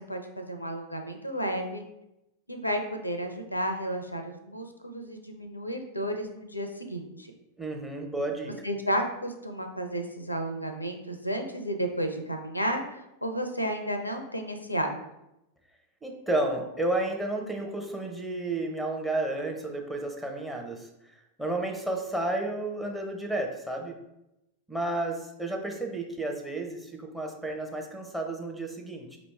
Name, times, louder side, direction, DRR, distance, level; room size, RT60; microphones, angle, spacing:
voice 1, 0.0-1.8 2.5-7.3 8.6-14.9, equal, 85° left, 6 dB, 0.5 m, -32 dB
voice 2, 7.6-8.5 16.0-20.9 21.4-24.0 24.7-29.2, right 2 dB, 5° right, 3 dB, 0.7 m, -32 dB
5.1 x 3.0 x 3.4 m, 0.89 s
figure-of-eight pair, 90°, 0 cm